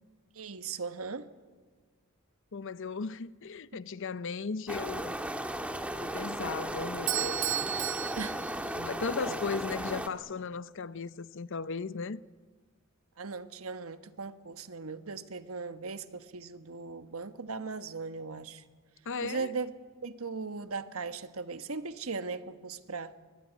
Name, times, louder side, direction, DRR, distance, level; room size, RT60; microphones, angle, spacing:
voice 1, 0.3-1.2 8.2-8.3 9.2-9.4 13.2-18.6 19.2-19.7 20.0-23.1, right 4 dB, 85° right, 1.3 m, -38 dB
voice 2, 2.5-5.2 6.0-7.4 8.7-12.2 19.1-19.5, left 5 dB, 65° left, 0.7 m, -36 dB
sound 1, 4.7-10.1, right 1 dB, 5° right, 1.5 m, -36 dB
Bell / Doorbell, 7.1-9.2, right 12 dB, 65° right, 1.3 m, -34 dB
23.0 x 21.5 x 9.4 m
head